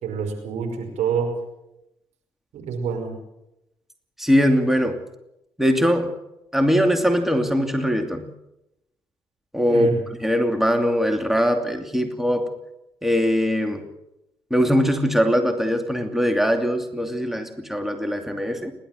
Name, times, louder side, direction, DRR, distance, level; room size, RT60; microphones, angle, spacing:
voice 1, 0.0-1.3 2.5-3.1 9.7-10.0, right 6 dB, 65° right, 3 dB, 5.4 m, -27 dB
voice 2, 4.2-5.0 5.6-6.2 6.5-8.3 9.5-9.9 10.2-12.5 13.0-13.8 14.5-18.7, equal, ahead, 5 dB, 2.6 m, -21 dB
30.0 x 11.5 x 7.9 m, 0.87 s
hypercardioid pair, 45°, 13 cm